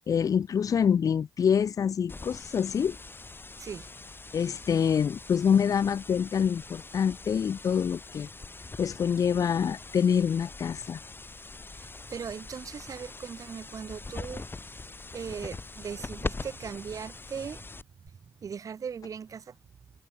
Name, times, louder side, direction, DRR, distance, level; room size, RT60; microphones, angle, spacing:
voice 1, 0.1-3.0 4.3-8.3 8.8-11.0, left 7 dB, 65° left, 0.6 m, -26 dB
sound 1, 2.1-18.1, left 3 dB, 35° left, 2.0 m, -42 dB
voice 2, 3.6-3.9 11.7-14.5 15.1-17.6 18.4-19.6, right 7 dB, 65° right, 0.8 m, -39 dB
supercardioid pair, 40°, 6 cm